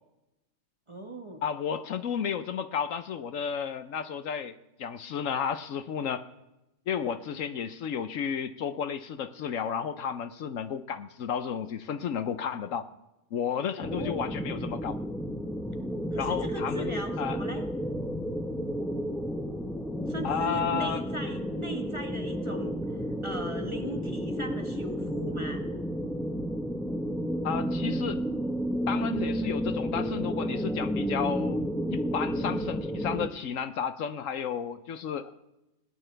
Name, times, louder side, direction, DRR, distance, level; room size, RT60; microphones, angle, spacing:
voice 1, 0.9-1.4 13.8-14.3 16.1-17.6 20.1-25.6, equal, 20° right, 4 dB, 1.4 m, -39 dB
voice 2, 1.4-6.3 6.9-12.9 13.3-15.0 16.2-17.4 20.2-21.0 27.4-28.2 28.9-31.6 31.9-35.3, left 7 dB, 70° left, 12 dB, 1.1 m, -32 dB
sound 1, 13.8-33.3, equal, ahead, 0.9 m, -31 dB
20.5 x 17.0 x 3.4 m, 0.95 s
omnidirectional pair, 1.5 m